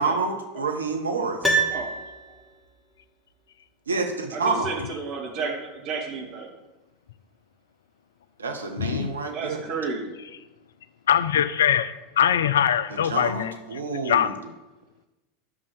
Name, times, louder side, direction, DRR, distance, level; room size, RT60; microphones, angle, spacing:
voice 1, 0.0-1.5 3.9-4.7 8.4-9.6 12.9-14.4, right 3 dB, 75° right, 5 dB, 1.1 m, -28 dB
Piano, 1.4-2.7 3.0-3.1, right 3 dB, ahead, 1.9 m, -26 dB
voice 2, 4.3-6.5 9.3-10.1, right 4 dB, 45° right, 0 dB, 2.6 m, -32 dB
voice 3, 8.8-9.1 11.1-13.5 14.0-14.3, left 9 dB, 65° left, 14 dB, 0.5 m, -22 dB
10.5 x 6.7 x 6.7 m, 1.1 s
figure-of-eight pair, 80°, 0 cm